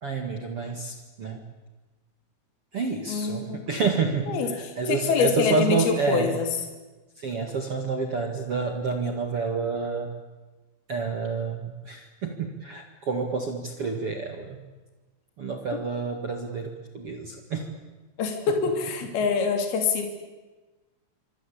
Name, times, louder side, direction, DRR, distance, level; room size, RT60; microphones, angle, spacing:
voice 1, 0.0-1.4 2.7-6.4 7.2-10.1 10.9-14.6 15.4-17.7 19.0-19.1, right 4 dB, 55° right, 4 dB, 1.6 m, -29 dB
voice 2, 3.1-3.6 4.3-4.5 4.9-6.5 15.7-15.8 18.2-20.1, left 5 dB, 55° left, 5 dB, 4.7 m, -25 dB
25.5 x 25.5 x 8.7 m, 1.2 s
omnidirectional pair, 5.7 m